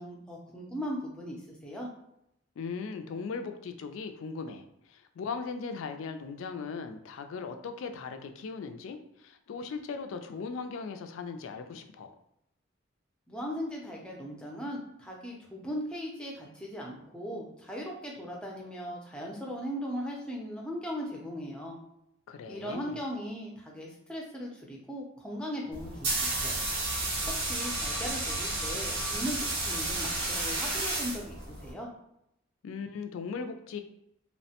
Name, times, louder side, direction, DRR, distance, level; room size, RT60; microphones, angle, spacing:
voice 1, 0.0-1.9 13.3-21.8 22.5-26.7 27.3-31.9, equal, 5° left, -2 dB, 0.4 m, -38 dB
voice 2, 2.6-12.1 22.3-23.0 32.6-33.8, left 5 dB, 70° left, 8 dB, 0.3 m, -38 dB
sound 1, 25.7-31.7, right 2 dB, 85° right, 0.8 m, -32 dB
3.0 x 2.1 x 2.8 m, 0.78 s
head